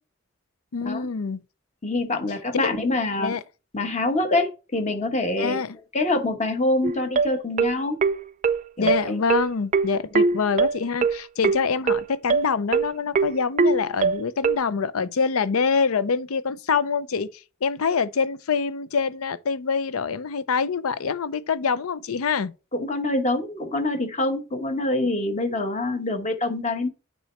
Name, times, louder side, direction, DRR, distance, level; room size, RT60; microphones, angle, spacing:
voice 1, 0.7-1.4 3.2-3.4 5.4-5.8 8.8-22.5, left 5 dB, 85° left, 0.5 m, -25 dB
voice 2, 1.8-3.4 3.7-5.6 5.9-8.0 8.8-9.2 22.7-26.9, left 2 dB, 35° left, 1.1 m, -25 dB
sound 1, 6.8-14.6, right 4 dB, 35° right, 0.4 m, -21 dB
9.2 x 3.1 x 4.3 m
head